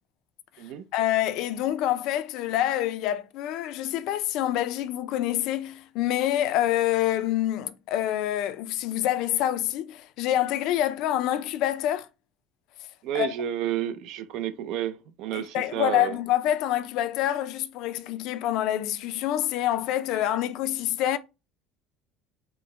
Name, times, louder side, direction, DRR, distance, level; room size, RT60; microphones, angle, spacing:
voice 1, 0.9-12.1 13.1-13.3 15.3-21.2, left 12 dB, 65° left, 0.4 m, -26 dB
voice 2, 13.0-16.2, right 11 dB, 60° right, 0.5 m, -31 dB
4.5 x 2.1 x 4.2 m
cardioid pair, 150°, 0 cm